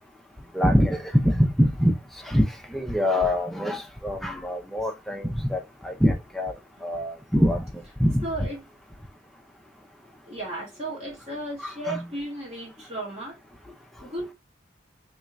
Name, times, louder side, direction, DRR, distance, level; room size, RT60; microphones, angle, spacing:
voice 1, 0.5-1.9 2.3-2.4 2.7-6.5 6.8-7.6 8.0-8.2 11.6-12.0, equal, ahead, 0.5 m, -24 dB
voice 2, 8.2-8.6 10.2-13.4 14.0-14.3, right 2 dB, 35° right, 1.9 m, -34 dB
4.3 x 3.2 x 2.3 m
head